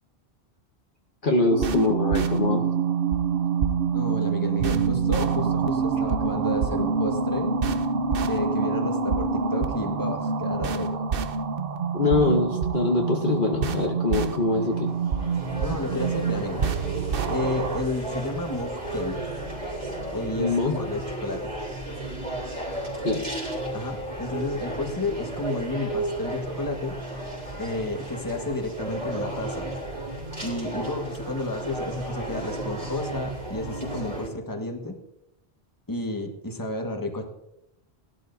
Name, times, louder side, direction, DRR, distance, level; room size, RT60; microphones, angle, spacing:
voice 1, 1.2-2.6 11.9-14.9 20.3-20.8 23.0-23.2, left 3 dB, 55° left, 2 dB, 1.2 m, -23 dB
sound 1, 1.5-17.8, right 5 dB, 60° right, 0.9 m, -26 dB
voice 2, 3.9-7.5 8.3-11.0 15.6-16.6 17.3-19.2 20.1-21.5 23.7-27.0 27.6-29.7 30.4-35.0 35.9-37.2, left 2 dB, 20° left, 3 dB, 1.5 m, -31 dB
sound 2, 14.5-34.3, right 1 dB, 30° right, 3.4 m, -33 dB
18.0 x 12.0 x 2.7 m, 0.83 s
omnidirectional pair, 1.1 m